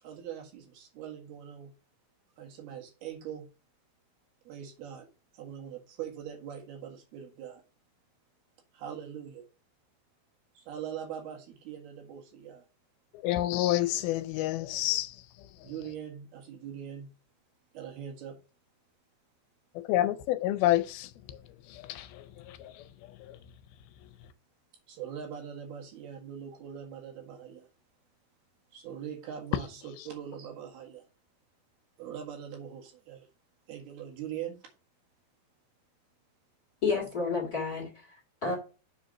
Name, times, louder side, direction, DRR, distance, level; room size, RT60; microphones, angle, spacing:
voice 1, 0.0-1.7 2.4-3.5 4.5-5.1 5.3-7.6 8.7-9.5 10.6-12.6 15.6-17.1 17.7-18.4 24.9-27.7 28.7-31.0 32.0-33.3 33.7-34.6 36.9-37.0, right 9 dB, 85° right, 3.7 m, -42 dB
voice 2, 13.1-15.2 19.8-21.4 21.7-22.8 23.2-23.4, left 14 dB, 85° left, 2.5 m, -29 dB
voice 3, 36.8-38.5, left 4 dB, 35° left, 1.6 m, -31 dB
7.2 x 4.0 x 6.2 m
omnidirectional pair, 4.4 m